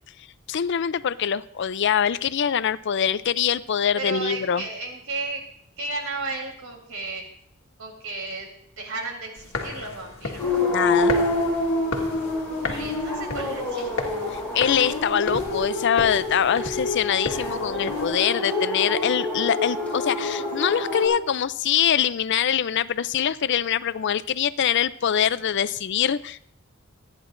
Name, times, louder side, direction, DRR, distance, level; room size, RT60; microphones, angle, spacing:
voice 1, 0.5-4.6 10.7-11.1 14.3-26.4, left 8 dB, 60° left, 16 dB, 0.5 m, -24 dB
voice 2, 4.0-5.4 5.8-7.2 7.8-8.5 8.8-10.4 12.7-14.1, right 3 dB, 90° right, 2 dB, 3.5 m, -33 dB
sound 1, 9.4-18.1, left 3 dB, 85° left, 1.6 m, -34 dB
sound 2, 10.4-21.1, left 2 dB, 5° left, 7.1 m, -27 dB
26.5 x 9.9 x 2.6 m, 0.68 s
head